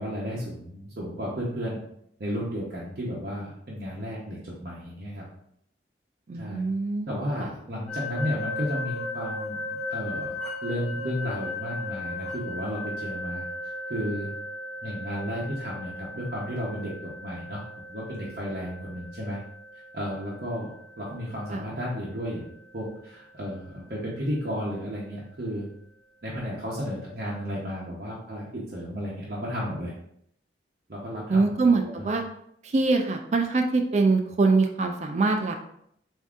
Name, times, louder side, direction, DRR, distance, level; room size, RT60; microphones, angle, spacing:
voice 1, 0.0-1.8 2.2-5.3 6.3-6.6 7.1-13.5 13.9-14.3 14.8-17.6 17.9-19.4 19.9-22.4 22.7-25.7 26.2-29.9 30.9-32.1, equal, 55° right, -6 dB, 0.8 m, -33 dB
voice 2, 6.3-7.1 21.5-21.6 31.3-32.2 32.6-35.6, right 3 dB, 40° right, 5 dB, 0.3 m, -23 dB
sound 1, 7.9-22.7, left 2 dB, 10° left, 1.1 m, -37 dB
7.0 x 2.7 x 2.4 m, 0.72 s
head